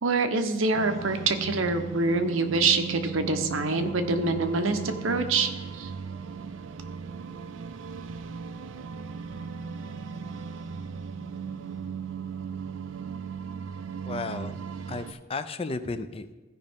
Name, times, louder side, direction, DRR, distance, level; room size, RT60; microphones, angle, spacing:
voice 1, 0.0-5.9, right 3 dB, 80° right, 7 dB, 0.9 m, -26 dB
sound 1, 0.7-15.1, right 6 dB, 65° right, 0.4 m, -37 dB
voice 2, 14.1-14.5 14.9-16.3, left 3 dB, 30° left, 11 dB, 0.4 m, -33 dB
15.0 x 5.2 x 3.5 m, 1.2 s
head